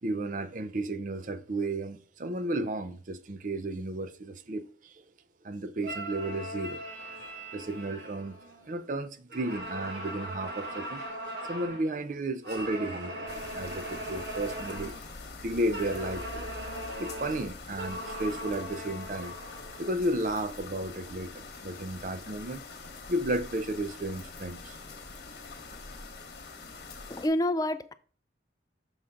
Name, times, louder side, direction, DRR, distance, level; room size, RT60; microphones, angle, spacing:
voice 1, 0.0-5.0 5.4-6.8 7.5-8.4 8.7-11.0 11.4-15.0 15.4-16.5 17.0-19.3 19.8-22.6 23.1-24.8, right 1 dB, 45° right, 0.5 m, -33 dB
sound 1, 5.8-8.9 9.3-11.9 12.4-15.1 15.7-19.9, right 1 dB, 65° right, 3.3 m, -39 dB
sound 2, 13.3-27.3, left 3 dB, 55° left, 1.1 m, -44 dB
voice 2, 27.1-27.9, left 1 dB, 20° left, 0.3 m, -28 dB
6.4 x 3.7 x 5.7 m
head